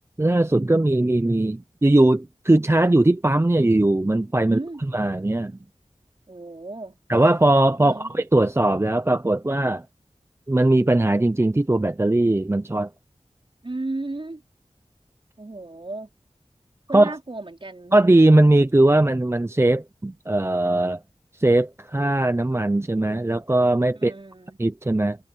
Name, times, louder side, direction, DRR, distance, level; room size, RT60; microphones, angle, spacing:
voice 1, 0.2-4.6 4.9-5.6 7.1-9.8 10.5-12.9 16.9-17.1 17.9-21.0 21.3-24.1 24.6-25.2, right 2 dB, 20° right, 0.6 m, -19 dB
voice 2, 4.4-4.8 6.3-7.0 7.8-8.1 13.6-14.4 15.4-16.1 16.9-17.9 23.9-24.6, right 2 dB, 45° right, 4.6 m, -34 dB
wide cardioid pair, 60°, 12 cm